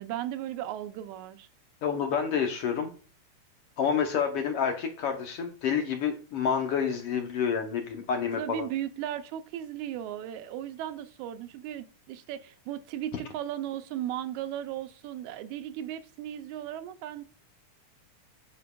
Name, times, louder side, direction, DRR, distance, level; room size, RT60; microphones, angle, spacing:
voice 1, 0.0-1.5 8.4-17.2, right 11 dB, 85° right, 2.0 m, -36 dB
voice 2, 1.8-2.9 3.8-8.7, left 7 dB, 70° left, 1.6 m, -28 dB
8.5 x 5.1 x 2.3 m
omnidirectional pair, 3.3 m